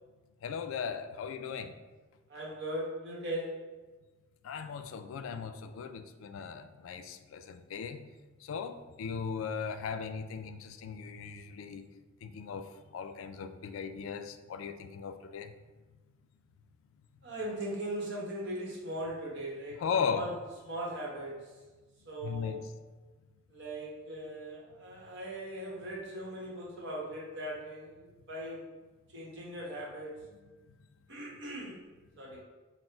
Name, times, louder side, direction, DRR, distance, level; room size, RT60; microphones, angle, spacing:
voice 1, 0.4-1.7 4.4-8.0 8.4-11.9 12.2-12.7 12.9-15.5 19.8-20.3 22.2-22.6, left 6 dB, 80° left, 9 dB, 0.3 m, -37 dB
voice 2, 2.3-3.7 17.2-19.8 20.1-20.4 20.6-21.6 22.1-22.6 23.5-28.7 29.1-30.2 31.1-31.9 32.2-32.4, right 1 dB, 60° right, -4 dB, 1.1 m, -39 dB
4.2 x 2.1 x 4.4 m, 1.2 s
head